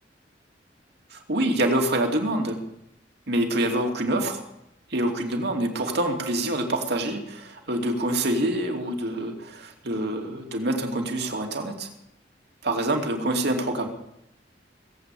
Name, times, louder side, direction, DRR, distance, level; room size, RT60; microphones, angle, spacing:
voice 1, 1.1-2.6 3.3-4.4 4.9-11.9 12.6-13.9, right 1 dB, 65° right, 3 dB, 2.7 m, -26 dB
19.5 x 8.4 x 8.4 m, 0.80 s
head